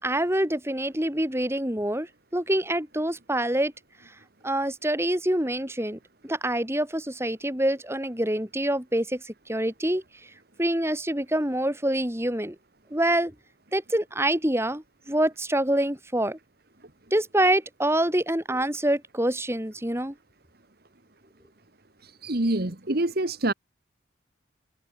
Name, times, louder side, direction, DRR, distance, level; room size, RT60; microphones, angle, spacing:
voice 1, 0.0-3.7 4.4-10.0 10.6-12.6 12.9-13.3 13.7-16.4 17.1-20.1, right 1 dB, 15° right, 3.1 m, -26 dB
voice 2, 22.0-23.5, right 1 dB, 50° right, 1.7 m, -26 dB
head